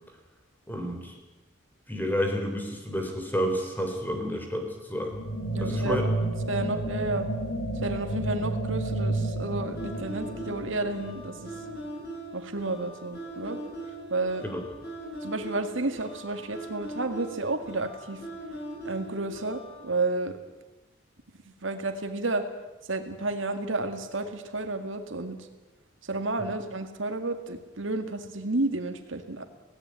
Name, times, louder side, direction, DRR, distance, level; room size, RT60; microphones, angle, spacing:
voice 1, 0.7-1.2 1.9-5.2 5.6-6.0 14.4-14.6 26.4-26.5, equal, 10° left, 3 dB, 3.6 m, -30 dB
sound 1, 5.1-11.9, right 2 dB, 85° left, 5.6 m, -31 dB
voice 2, 5.5-6.1 6.5-7.3 7.8-11.5 12.3-13.6 14.1-14.4 15.2-18.2 18.8-20.4 21.4-22.5 22.8-25.5 26.0-29.4, right 2 dB, 80° right, 7 dB, 2.0 m, -31 dB
sound 2, 9.8-19.8, right 1 dB, 50° left, 7.3 m, -40 dB
17.5 x 17.0 x 9.8 m, 1.1 s
head